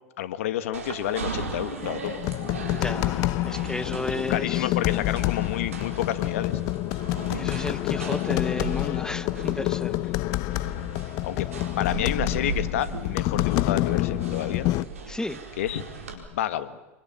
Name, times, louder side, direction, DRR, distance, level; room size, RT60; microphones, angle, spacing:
voice 1, 0.2-2.2 3.8-6.6 11.2-11.5 11.8-14.7 15.6-15.8 16.1-16.8, left 11 dB, 75° left, 1.7 m, -30 dB
sound 1, 0.7-16.1, right 4 dB, 85° right, 4.4 m, -38 dB
sound 2, 1.8-14.9, left 18 dB, 55° left, 0.7 m, -27 dB
voice 2, 2.7-4.7 7.3-10.0 15.1-15.4, left 2 dB, 10° left, 1.3 m, -33 dB
26.0 x 23.5 x 7.4 m
hypercardioid pair, 85°, 7 cm